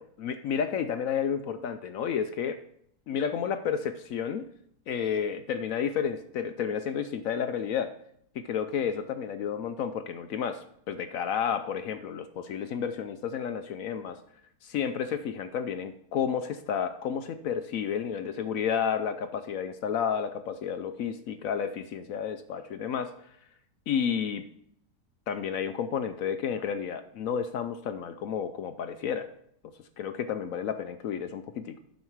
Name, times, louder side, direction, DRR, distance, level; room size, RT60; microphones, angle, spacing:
voice 1, 0.0-2.6 3.1-4.5 4.9-7.9 8.3-14.2 14.6-23.4 23.9-24.4 25.3-29.3 29.6-31.8, left 7 dB, 70° left, 9 dB, 0.9 m, -31 dB
9.4 x 6.4 x 4.6 m, 0.69 s
omnidirectional pair, 1.7 m